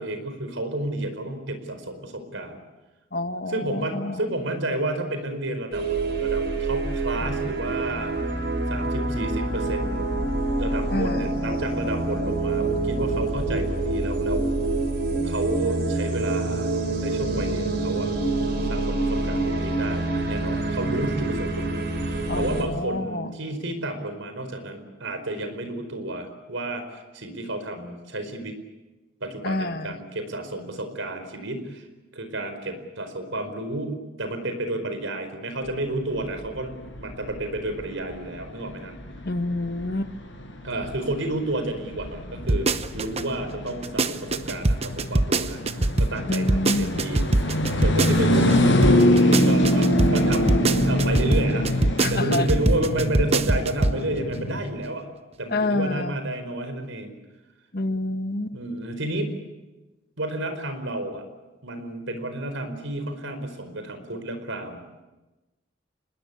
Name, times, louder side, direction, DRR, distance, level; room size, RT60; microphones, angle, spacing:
voice 1, 0.0-2.6 3.5-5.9 6.2-8.1 8.7-10.2 10.6-14.5 15.2-16.7 17.0-18.1 18.7-28.6 29.2-31.9 32.1-38.9 40.6-45.6 46.0-48.8 49.4-50.5 50.8-55.1 55.4-57.1 58.5-59.3 60.2-61.2 61.6-64.8, right 1 dB, 80° right, 9 dB, 4.8 m, -31 dB
voice 2, 3.1-4.3 10.9-11.3 22.3-23.4 29.4-30.0 39.2-40.1 46.3-47.0 52.0-52.5 55.5-56.2 57.7-58.6, left 2 dB, 50° left, 9 dB, 1.4 m, -28 dB
sound 1, 5.7-22.6, right 2 dB, 55° right, 5.1 m, -26 dB
sound 2, 35.7-54.6, left 1 dB, 70° left, 6.6 m, -25 dB
sound 3, 42.5-43.2 43.7-48.6 48.8-54.0 54.3-54.4, right 2 dB, 30° right, 0.9 m, -22 dB
26.5 x 20.5 x 8.6 m, 1.1 s
head